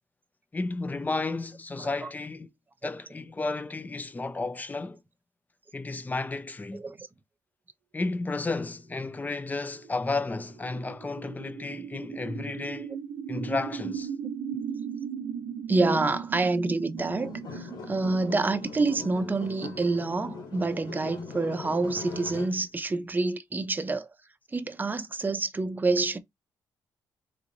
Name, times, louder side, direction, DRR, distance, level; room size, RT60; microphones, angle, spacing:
voice 1, 0.5-2.5 2.8-5.0 5.7-6.8 7.9-12.9 13.3-14.1, left 3 dB, 20° left, 0.5 m, -32 dB
sound 1, 8.8-20.9, right 7 dB, 90° right, 0.5 m, -39 dB
voice 2, 15.7-24.1 24.5-26.2, right 3 dB, 20° right, 0.6 m, -27 dB
sound 2, 17.0-22.6, left 5 dB, 75° left, 1.0 m, -41 dB
3.4 x 3.0 x 2.6 m
cardioid pair, 95°, 8 cm